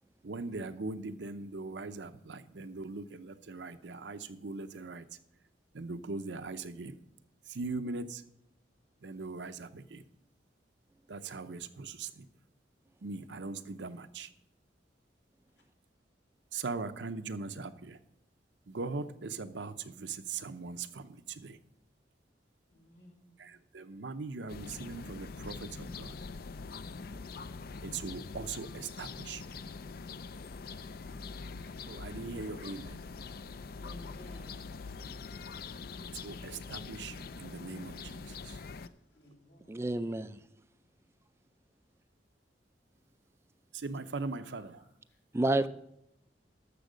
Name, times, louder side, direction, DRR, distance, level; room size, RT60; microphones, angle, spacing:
voice 1, 0.2-5.0 5.7-7.0 7.5-8.2 9.0-10.0 11.1-12.3 13.0-14.3 16.5-18.0 18.7-21.6 23.4-26.2 27.8-29.4 31.9-33.0 35.0-35.1 36.2-38.6 43.7-44.8, right 3 dB, 80° right, 10 dB, 0.7 m, -40 dB
voice 2, 22.7-23.4 33.8-34.9 38.8-39.9 44.8-45.6, equal, 80° left, -1 dB, 3.0 m, -57 dB
sound 1, 24.5-38.9, left 4 dB, 55° left, 0.4 m, -44 dB
voice 3, 39.7-40.3 45.3-45.7, right 2 dB, 15° right, 13 dB, 0.3 m, -29 dB
12.0 x 7.1 x 5.1 m, 0.81 s
head